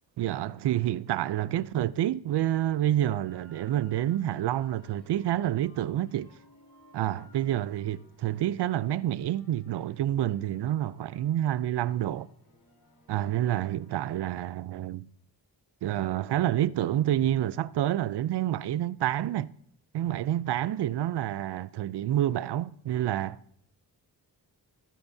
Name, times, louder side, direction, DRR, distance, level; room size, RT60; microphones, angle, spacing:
voice 1, 0.2-6.3 6.9-12.3 13.1-15.1 15.8-19.5 19.9-23.4, right 12 dB, 85° right, 0.6 m, -28 dB
sound 1, 3.2-14.3, left 1 dB, 70° left, 3.6 m, -60 dB
20.5 x 10.5 x 2.7 m
wide cardioid pair, 125°, 39 cm